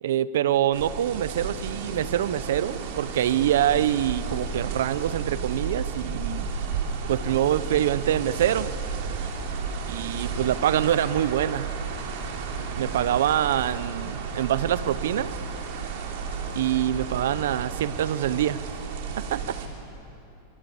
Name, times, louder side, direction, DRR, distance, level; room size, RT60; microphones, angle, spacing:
voice 1, 0.0-6.5 7.1-8.7 9.9-11.7 12.8-15.3 16.5-18.6 19.2-19.4, right 11 dB, 80° right, 16 dB, 0.8 m, -25 dB
sound 1, 0.7-19.7, right 5 dB, 60° right, 3.9 m, -33 dB
27.5 x 25.0 x 7.2 m, 3.0 s
supercardioid pair, 135°, 0 cm